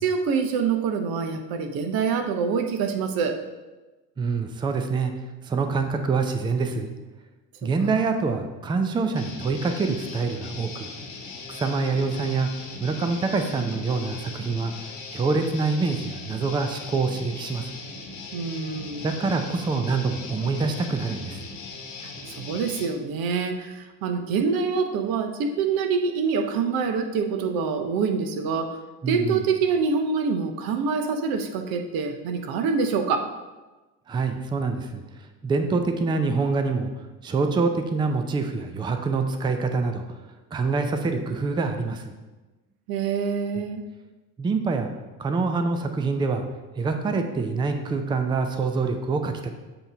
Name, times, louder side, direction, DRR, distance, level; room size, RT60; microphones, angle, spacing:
voice 1, 0.0-3.4 18.3-19.1 22.4-28.7 29.1-33.3 42.9-43.8, right 5 dB, 50° right, 6 dB, 0.8 m, -25 dB
voice 2, 4.2-5.1 5.5-6.9 7.6-10.9 11.5-12.5 12.8-14.7 15.1-17.7 19.0-21.4 29.0-29.4 34.1-35.0 35.4-36.9 37.2-40.0 40.5-42.2 44.4-44.9 45.2-46.4 46.8-49.5, right 4 dB, 10° right, 7 dB, 0.4 m, -25 dB
Guitar, 9.1-22.8, left 4 dB, 40° left, 1.2 m, -39 dB
7.7 x 2.9 x 4.9 m, 1.2 s
hypercardioid pair, 75°, 47 cm